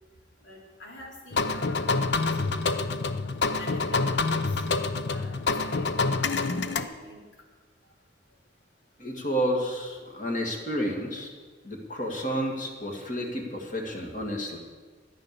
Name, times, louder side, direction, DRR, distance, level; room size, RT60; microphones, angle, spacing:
voice 1, 0.4-1.9 2.2-3.1 3.6-4.4 4.6-5.9 6.3-7.2, left 1 dB, 85° left, -2 dB, 3.8 m, -46 dB
sound 1, 1.3-6.8, left 3 dB, 70° left, 0.7 m, -27 dB
voice 2, 9.0-11.3 11.6-14.6, equal, 45° left, 1 dB, 2.3 m, -30 dB
14.0 x 10.5 x 6.9 m, 1.4 s
head